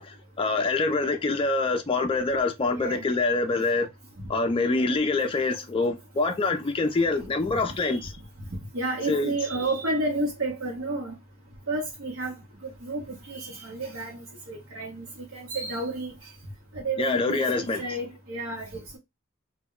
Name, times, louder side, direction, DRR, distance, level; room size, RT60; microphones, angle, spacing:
voice 1, 0.0-3.9 4.3-8.1 9.1-9.3 17.0-17.8, left 3 dB, 25° left, 0.4 m, -25 dB
voice 2, 2.7-3.0 7.7-8.0 8.5-11.1 11.7-12.4 12.6-15.1 15.3-16.1 16.7-19.0, right 2 dB, 60° right, 0.8 m, -31 dB
2.2 x 2.1 x 3.6 m
head